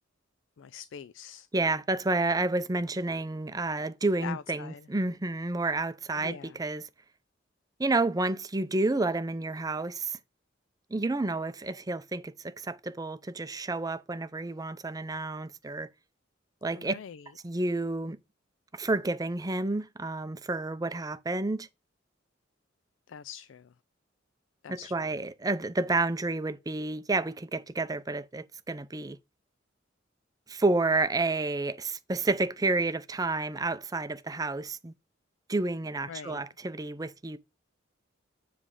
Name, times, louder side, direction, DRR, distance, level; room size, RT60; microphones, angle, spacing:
voice 1, 0.6-1.5 4.2-4.9 6.1-6.6 16.7-17.3 23.1-23.7 24.6-25.1 36.1-36.4, left 7 dB, 80° left, 0.4 m, -43 dB
voice 2, 1.5-6.9 7.8-10.2 10.9-15.9 16.6-16.9 17.4-18.2 18.7-21.7 24.7-29.2 30.5-34.9 35.5-37.4, right 2 dB, 20° right, 0.5 m, -30 dB
7.5 x 3.3 x 4.9 m
head